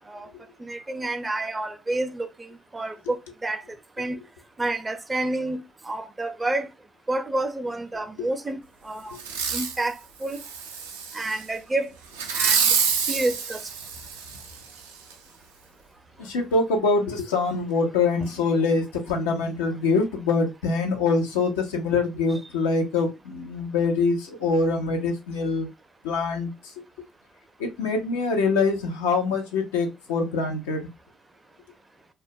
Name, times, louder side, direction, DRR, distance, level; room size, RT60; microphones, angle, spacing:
voice 1, 0.6-3.2 3.4-3.6 4.0-4.2 4.6-5.6 5.8-6.7 7.1-9.2 9.5-10.4 11.1-11.9 12.3-12.8 13.1-13.6, right 2 dB, 20° right, 0.4 m, -29 dB
Fireworks, 9.2-9.8 10.3-11.4 12.2-14.5 15.1-15.2, right 6 dB, 90° right, 0.4 m, -26 dB
voice 2, 16.2-25.7 26.0-26.5 27.6-30.9, left 4 dB, 85° left, 0.5 m, -24 dB
2.2 x 2.1 x 2.6 m
hypercardioid pair, 55°, 0 cm